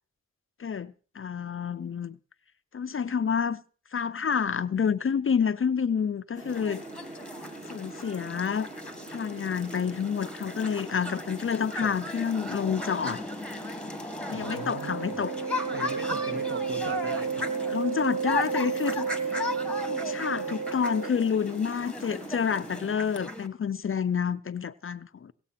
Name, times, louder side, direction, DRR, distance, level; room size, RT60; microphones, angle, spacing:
voice 1, 0.6-2.2 2.7-3.6 3.9-6.8 7.7-8.7 9.1-13.2 14.3-15.3 17.7-19.1 19.4-19.5 19.8-25.3, left 7 dB, 45° left, 0.6 m, -29 dB
sound 1, 6.3-23.0, right 2 dB, 25° right, 2.3 m, -44 dB
sound 2, 6.5-23.5, left 2 dB, 5° left, 1.6 m, -37 dB
voice 2, 14.0-15.1 15.7-17.5, right 2 dB, 40° right, 1.7 m, -40 dB
Wind instrument woodwind instrument, 14.3-21.3, right 6 dB, 55° right, 3.6 m, -32 dB
18.0 x 7.7 x 5.7 m
cardioid pair, 65°, 30 cm